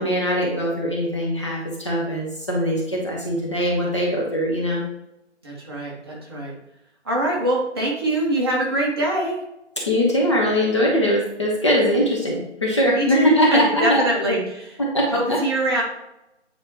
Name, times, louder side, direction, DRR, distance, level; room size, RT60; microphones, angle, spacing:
voice 1, 0.0-4.8 9.9-14.0 14.9-15.4, equal, 25° left, -3 dB, 0.9 m, -21 dB
voice 2, 5.4-6.6 7.0-9.4 12.9-14.8 15.1-15.8, right 1 dB, 20° right, -5 dB, 1.2 m, -23 dB
9.1 x 4.3 x 3.0 m, 0.87 s
figure-of-eight pair, 155°, 36 cm